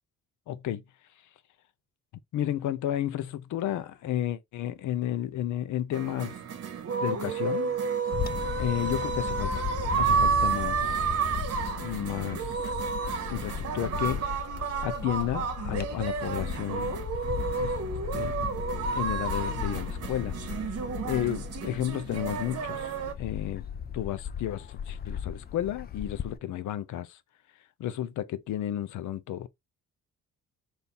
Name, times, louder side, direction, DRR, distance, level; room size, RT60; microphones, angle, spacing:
voice 1, 0.5-0.8 2.3-6.3 7.0-7.7 8.6-9.6 10.0-11.2 11.8-12.6 13.3-14.3 14.8-17.0 17.6-17.7 18.1-18.5 18.9-20.3 21.0-22.9 23.2-23.7 23.9-27.2 27.8-29.5, left 12 dB, 75° left, 0.7 m, -32 dB
sound 1, 5.9-23.1, right 5 dB, 55° right, 1.0 m, -31 dB
Bird / Wind, 8.1-26.4, left 8 dB, 35° left, 0.5 m, -36 dB
3.6 x 2.7 x 4.2 m
cardioid pair, 90°, 30 cm